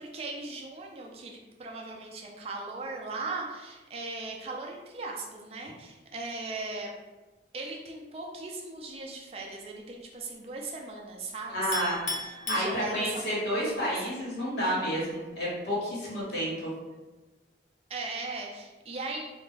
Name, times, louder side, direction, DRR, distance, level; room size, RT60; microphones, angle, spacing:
voice 1, 0.0-6.9 7.5-13.9 17.9-19.2, right 3 dB, 35° right, 0 dB, 0.3 m, -38 dB
voice 2, 11.5-12.0 12.5-16.5, equal, 75° left, -7 dB, 1.3 m, -30 dB
Chink clink, 11.7-13.4, left 2 dB, 40° left, 0.6 m, -36 dB
2.5 x 2.1 x 3.7 m, 1.2 s
head